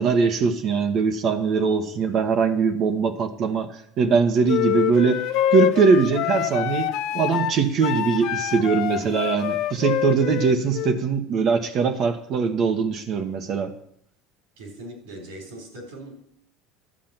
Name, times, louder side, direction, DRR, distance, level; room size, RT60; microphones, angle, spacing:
voice 1, 0.0-3.7 4.0-5.2 5.5-13.7, right 5 dB, 50° right, 6 dB, 1.3 m, -21 dB
sound 1, 4.5-11.0, left 12 dB, 65° left, 0.6 m, -26 dB
voice 2, 14.6-16.4, right 1 dB, 85° right, 3 dB, 4.0 m, -40 dB
11.0 x 7.5 x 5.9 m, 0.67 s
supercardioid pair, 95°, 0 cm